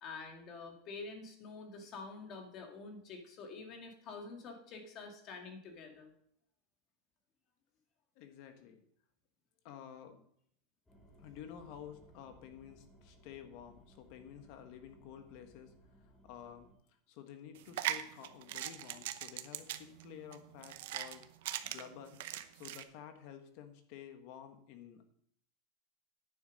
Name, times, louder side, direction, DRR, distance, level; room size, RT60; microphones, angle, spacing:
voice 1, 0.0-6.1, left 4 dB, 35° left, 3 dB, 2.1 m, -47 dB
voice 2, 8.1-8.8 9.6-10.2 11.2-15.7 16.2-16.7 17.1-21.2 21.6-22.2 22.5-25.1, left 9 dB, 55° left, 8 dB, 1.4 m, -51 dB
sound 1, 10.9-16.7, equal, 10° left, 2.1 m, -62 dB
sound 2, 17.6-22.8, right 13 dB, 70° right, 0.8 m, -40 dB
9.9 x 7.1 x 5.2 m, 0.68 s
supercardioid pair, 150°, 0 cm